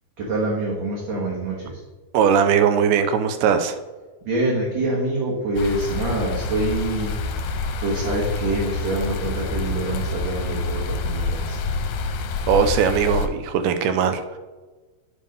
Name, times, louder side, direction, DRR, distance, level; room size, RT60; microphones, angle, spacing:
voice 1, 0.2-1.8 4.2-7.1 7.8-11.6, right 2 dB, 60° right, -5 dB, 2.4 m, -25 dB
voice 2, 2.1-3.8 12.5-14.4, right 7 dB, 80° right, 9 dB, 2.0 m, -19 dB
sound 1, 5.6-13.3, left 3 dB, 80° left, 2.1 m, -27 dB
9.5 x 3.6 x 5.2 m, 1.3 s
omnidirectional pair, 3.8 m